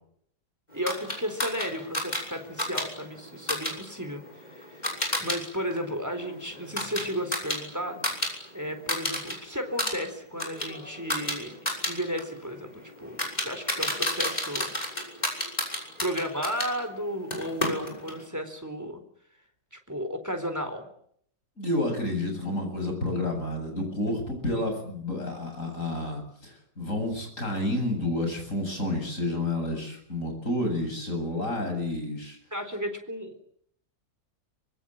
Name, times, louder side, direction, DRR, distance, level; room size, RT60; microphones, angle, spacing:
voice 1, 0.7-4.9 5.2-8.0 8.5-11.6 11.8-15.1 16.0-19.0 19.7-20.9 32.5-33.4, equal, 10° right, 7 dB, 3.9 m, -34 dB
sound 1, 0.9-5.4 5.7-8.3 8.6-9.3 9.7-16.7 17.3-18.2, left 1 dB, 25° left, 6.6 m, -32 dB
voice 2, 21.6-32.4, left 1 dB, 55° left, 4 dB, 8.1 m, -30 dB
24.5 x 23.0 x 8.8 m, 0.69 s
omnidirectional pair, 1.7 m